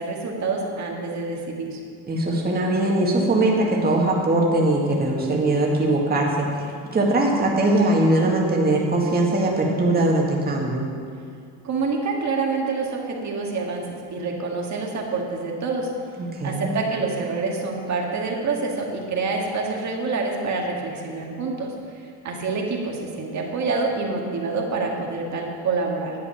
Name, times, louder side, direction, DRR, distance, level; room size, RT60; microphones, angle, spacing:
voice 1, 0.0-1.8 11.6-15.9 16.4-21.7 22.2-26.1, right 4 dB, 45° right, 0 dB, 2.0 m, -27 dB
voice 2, 2.1-10.9 16.3-16.7, right 2 dB, 25° right, -2 dB, 1.9 m, -21 dB
10.5 x 8.0 x 5.8 m, 2.3 s
cardioid pair, 105°, 38 cm